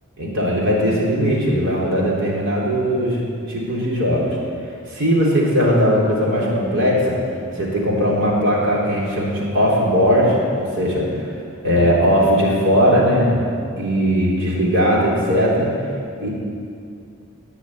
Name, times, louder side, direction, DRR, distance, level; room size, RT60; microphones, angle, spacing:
voice 1, 0.2-3.2 3.5-4.4 4.9-7.2 7.6-11.1 11.6-13.4 13.8-15.7 16.2-16.3, equal, 55° right, -4 dB, 3.9 m, -18 dB
18.5 x 6.4 x 9.9 m, 2.4 s
head